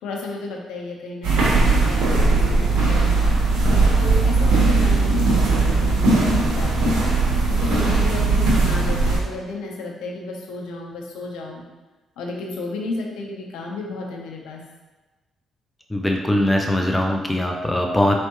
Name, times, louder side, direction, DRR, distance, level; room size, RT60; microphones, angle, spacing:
voice 1, 0.0-3.4 3.9-7.0 7.5-11.6 12.2-14.6, left 3 dB, 90° left, 0 dB, 0.7 m, -32 dB
sound 1, 1.2-9.2, right 3 dB, 85° right, 1.1 m, -18 dB
voice 2, 15.9-18.2, left 1 dB, 10° left, 2 dB, 0.4 m, -21 dB
4.4 x 3.3 x 2.9 m, 1.2 s
cardioid pair, 90°, 0 cm